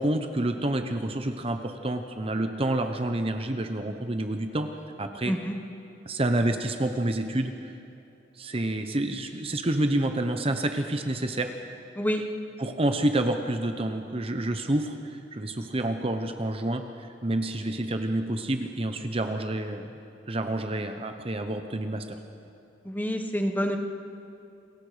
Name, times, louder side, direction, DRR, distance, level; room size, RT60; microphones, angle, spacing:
voice 1, 0.0-4.7 5.0-5.3 6.1-7.7 8.4-11.5 12.6-19.9 20.3-22.2, right 1 dB, 30° right, 6 dB, 1.0 m, -28 dB
voice 2, 22.8-23.8, equal, 10° left, 4 dB, 1.4 m, -27 dB
28.5 x 21.0 x 5.1 m, 2.8 s
head